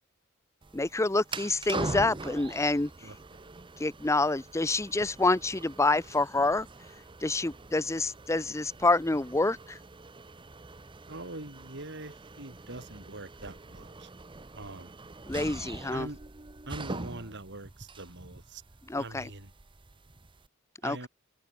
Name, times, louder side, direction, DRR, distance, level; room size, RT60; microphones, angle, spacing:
sound 1, 0.6-20.5, right 3 dB, 25° right, 0.8 m, -43 dB
voice 1, 0.7-3.1 3.8-6.7 7.2-9.8 15.3-16.1 18.9-19.3 20.8-21.1, left 2 dB, 15° left, 0.6 m, -27 dB
voice 2, 3.0-3.4 11.1-14.1 14.5-14.9 15.9-16.2 16.7-18.6 19.0-19.5 20.8-21.1, right 2 dB, 55° right, 4.4 m, -43 dB
head